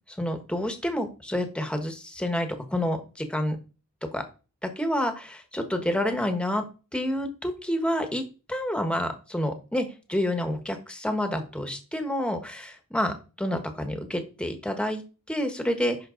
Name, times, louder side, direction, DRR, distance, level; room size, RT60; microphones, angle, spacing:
voice 1, 0.1-3.6 4.1-4.2 4.6-6.7 6.9-8.2 8.5-16.0, left 1 dB, 5° left, 6 dB, 1.3 m, -29 dB
10.5 x 5.6 x 3.9 m, 0.34 s
head